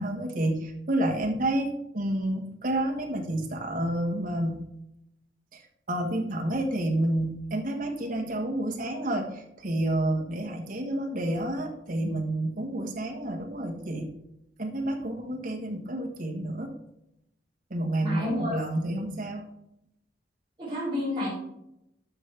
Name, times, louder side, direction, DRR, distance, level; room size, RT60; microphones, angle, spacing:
voice 1, 0.0-4.6 5.5-5.6 5.9-14.1 14.6-16.7 17.7-19.5, right 1 dB, 50° right, 2 dB, 1.5 m, -29 dB
voice 2, 18.0-18.5 20.6-21.3, left 1 dB, 25° right, -8 dB, 3.3 m, -30 dB
12.0 x 5.8 x 3.5 m, 0.82 s
head